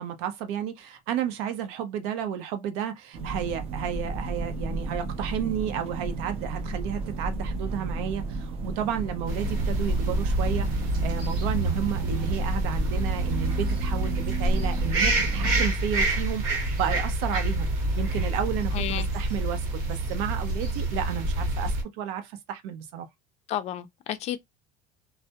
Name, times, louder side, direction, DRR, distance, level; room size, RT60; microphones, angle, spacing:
voice 1, 0.0-17.7 18.0-23.1, right 9 dB, 85° right, 0.6 m, -32 dB
sound 1, 3.1-15.7, right 3 dB, 35° right, 0.6 m, -33 dB
sound 2, 9.3-21.8, right 1 dB, 60° right, 1.0 m, -27 dB
voice 2, 18.7-19.1 23.5-24.4, left 11 dB, 40° left, 0.4 m, -31 dB
2.2 x 2.0 x 2.8 m
cardioid pair, 150°, 16 cm